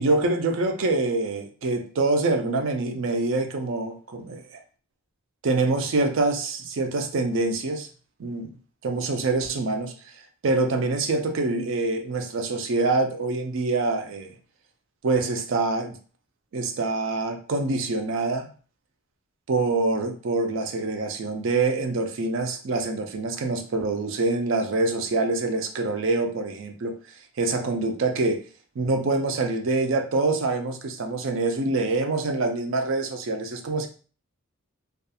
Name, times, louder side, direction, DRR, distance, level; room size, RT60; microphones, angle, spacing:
voice 1, 0.0-4.6 5.4-7.9 8.2-8.5 8.8-9.9 10.4-14.4 15.0-16.0 16.5-18.5 19.5-26.9 27.4-28.4 28.8-33.9, right 3 dB, 60° right, 5 dB, 0.4 m, -25 dB
2.4 x 2.3 x 2.7 m, 0.40 s
head